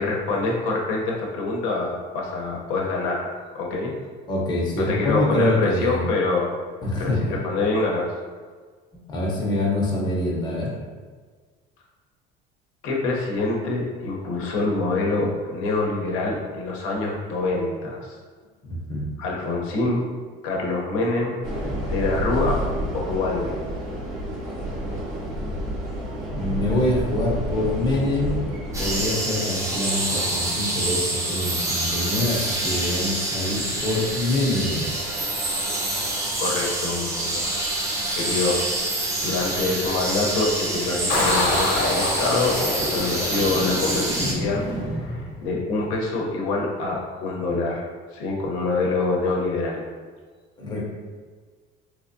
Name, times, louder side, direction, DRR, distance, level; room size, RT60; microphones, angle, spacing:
voice 1, 0.0-3.9 4.9-6.5 7.0-8.1 12.8-18.2 19.2-20.1 20.4-21.3 21.9-22.6 22.9-23.6 36.4-37.5 38.1-38.7 39.2-44.6 44.9-49.8, left 3 dB, 85° left, -2 dB, 0.8 m, -25 dB
voice 2, 4.3-6.1 6.8-7.3 8.9-10.7 18.6-19.1 26.3-28.4 28.8-34.9 50.6-50.8, left 1 dB, 20° left, -4 dB, 0.7 m, -25 dB
sound 1, 21.4-29.0, equal, 80° right, 1.0 m, -29 dB
sound 2, 28.7-44.3, right 2 dB, 15° right, 0.5 m, -26 dB
sound 3, 41.1-45.6, left 2 dB, 50° left, 0.9 m, -26 dB
3.4 x 3.2 x 2.6 m, 1.5 s
cardioid pair, 155°, 21 cm